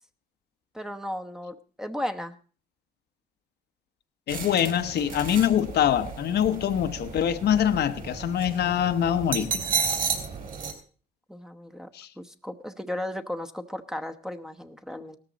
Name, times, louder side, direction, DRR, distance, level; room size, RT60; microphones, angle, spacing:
voice 1, 0.7-2.4 11.3-11.9 12.2-15.2, left 1 dB, 5° right, 0.9 m, -35 dB
voice 2, 4.3-9.6 11.9-12.1, left 10 dB, 60° left, 0.9 m, -24 dB
sound 1, 4.3-10.7, right 6 dB, 45° right, 3.8 m, -33 dB
17.0 x 13.5 x 4.0 m
cardioid pair, 105°, 19 cm